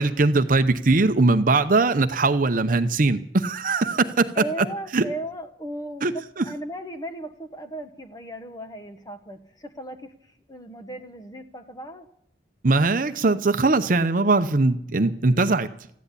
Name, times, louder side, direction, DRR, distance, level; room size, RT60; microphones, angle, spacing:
voice 1, 0.0-4.3 4.6-4.7 4.9-5.1 6.0-6.4 12.6-15.7, right 3 dB, 50° right, 10 dB, 0.7 m, -21 dB
voice 2, 4.4-10.1 10.5-12.0, right 1 dB, 20° left, 7 dB, 1.2 m, -36 dB
14.5 x 10.5 x 8.4 m, 0.70 s
head